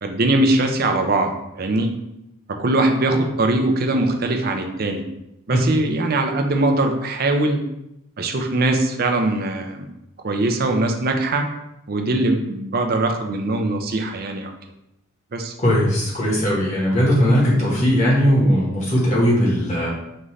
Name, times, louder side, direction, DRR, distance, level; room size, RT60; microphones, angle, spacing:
voice 1, 0.0-1.3 1.6-1.9 2.6-5.0 5.5-7.6 8.2-9.9 10.2-11.4 11.9-14.5 15.3-15.5, right 2 dB, 45° right, 5 dB, 0.5 m, -21 dB
voice 2, 15.6-19.9, equal, 35° left, -5 dB, 1.3 m, -18 dB
5.3 x 2.5 x 3.2 m, 0.85 s
head